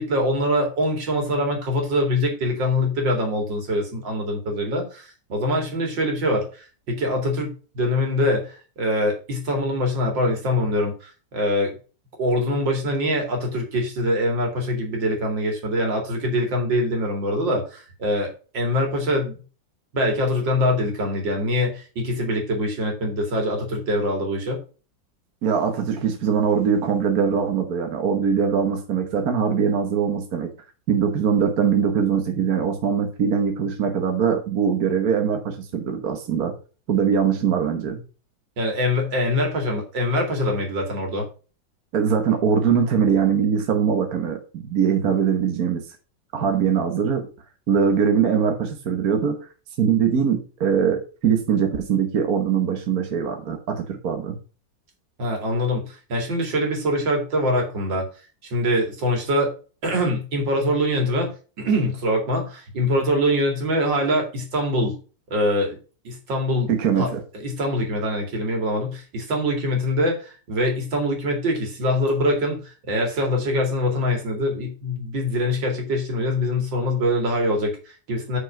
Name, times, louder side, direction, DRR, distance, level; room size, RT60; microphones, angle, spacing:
voice 1, 0.0-11.7 12.2-19.4 19.9-24.6 38.6-41.3 55.2-58.1 58.4-59.5 59.8-65.0 65.3-65.8 66.0-67.1 67.3-72.6 72.9-78.4, left 1 dB, 75° right, 3 dB, 3.1 m, -24 dB
voice 2, 25.4-30.5 30.9-36.5 36.9-38.0 41.9-45.8 46.3-47.3 47.7-49.4 49.8-54.4 66.7-67.2, right 7 dB, 55° right, 4 dB, 1.5 m, -22 dB
6.2 x 5.4 x 5.7 m, 0.35 s
omnidirectional pair, 2.1 m